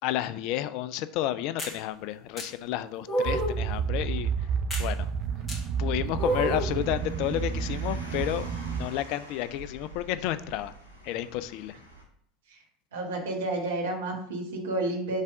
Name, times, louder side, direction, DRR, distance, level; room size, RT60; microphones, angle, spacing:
voice 1, 0.0-4.3 4.8-5.1 5.8-10.7 11.0-11.8, left 13 dB, 50° left, 14 dB, 0.4 m, -31 dB
sound 1, 1.6-1.8 2.4-2.5 3.1-3.6 4.7-4.9 5.5-5.6 6.2-6.7, right 1 dB, 25° left, 1.9 m, -29 dB
sound 2, 3.2-8.9, right 6 dB, 40° right, 0.5 m, -30 dB
Car, 6.2-12.0, equal, 85° left, 1.4 m, -47 dB
voice 2, 12.9-15.2, right 2 dB, 65° right, 1 dB, 1.4 m, -31 dB
6.6 x 3.5 x 4.8 m, 0.67 s
figure-of-eight pair, 75°, 0 cm